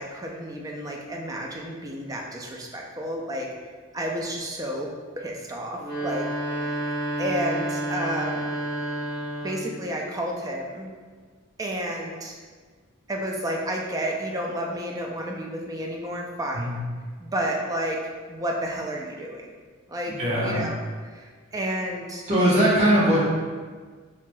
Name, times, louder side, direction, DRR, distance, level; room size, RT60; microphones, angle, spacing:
voice 1, 0.0-3.5 3.9-4.9 5.2-6.9 7.2-8.5 9.4-10.9 11.6-12.4 13.1-16.7 17.2-18.0 18.3-19.5 19.9-20.1 20.4-22.2, right 1 dB, 20° right, 0 dB, 0.4 m, -31 dB
sound 1, 5.7-9.8, right 1 dB, 25° left, 1.4 m, -30 dB
voice 2, 20.2-20.6 22.3-23.2, equal, 35° right, -9 dB, 1.1 m, -20 dB
4.6 x 2.9 x 2.2 m, 1.5 s
head